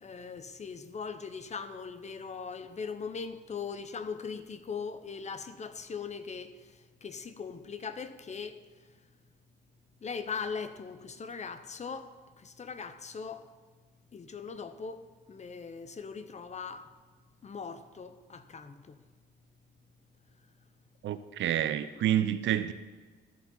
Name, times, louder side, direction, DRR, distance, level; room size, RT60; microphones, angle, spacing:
voice 1, 0.0-6.5 7.0-8.6 10.0-12.1 12.4-13.5 14.1-16.8 17.4-19.0, left 5 dB, 35° left, 0.7 m, -40 dB
voice 2, 21.0-22.7, right 11 dB, 70° right, 0.6 m, -28 dB
13.5 x 4.6 x 5.5 m
cardioid pair, 90°, 20 cm